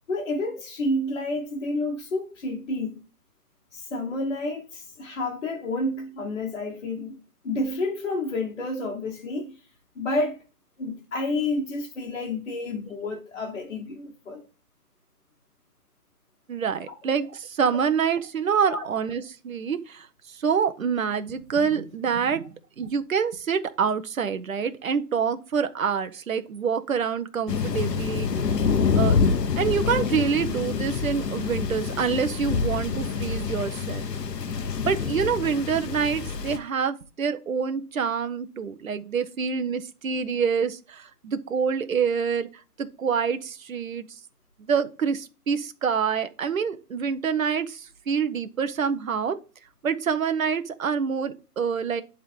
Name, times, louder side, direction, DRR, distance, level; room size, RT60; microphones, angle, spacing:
voice 1, 0.1-3.0 3.7-7.2 7.4-9.6 9.9-10.4 10.8-14.4 16.9-17.0 18.7-18.8, left 2 dB, 45° left, 1.5 m, -30 dB
voice 2, 16.5-22.5 22.8-28.3 28.9-29.2 29.6-34.0 34.8-42.5 42.8-44.1 44.7-49.4 49.8-52.0, right 6 dB, 55° right, 1.0 m, -26 dB
Thunder, 27.5-36.6, left 5 dB, 90° left, 1.2 m, -26 dB
11.0 x 3.8 x 3.6 m
hypercardioid pair, 170°, 47 cm